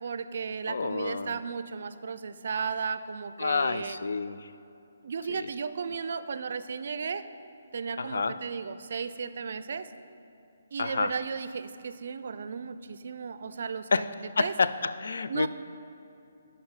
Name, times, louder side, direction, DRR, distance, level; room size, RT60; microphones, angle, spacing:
voice 1, 0.0-4.0 5.0-7.2 7.7-9.9 10.7-14.1 14.4-14.5 15.3-15.5, right 5 dB, 60° right, 13 dB, 0.4 m, -35 dB
voice 2, 0.7-1.4 3.4-4.5 5.3-5.5 8.0-8.4 10.8-11.1 13.9-14.1 14.4-15.5, left 4 dB, 70° left, 13 dB, 0.3 m, -29 dB
7.8 x 5.4 x 5.6 m, 2.7 s
hypercardioid pair, 150°, 0 cm